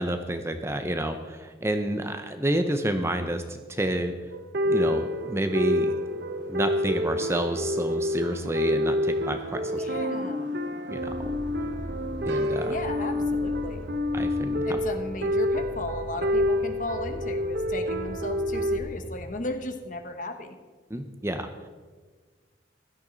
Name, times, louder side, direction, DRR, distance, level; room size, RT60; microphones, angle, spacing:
voice 1, 0.0-4.1 4.6-6.0 6.5-9.8 10.9-11.0 12.2-12.8 14.1-14.8 20.9-21.5, right 1 dB, 15° right, 7 dB, 0.7 m, -29 dB
sound 1, 4.3-18.8, left 1 dB, 60° right, 0.8 m, -28 dB
sound 2, 4.7-14.0, right 3 dB, 85° right, 1.1 m, -43 dB
voice 2, 9.7-10.6 12.7-13.9 14.6-20.6, left 2 dB, 45° left, 7 dB, 1.0 m, -35 dB
sound 3, 10.9-19.2, equal, 40° right, 3.2 m, -40 dB
15.5 x 12.0 x 4.0 m, 1.4 s
head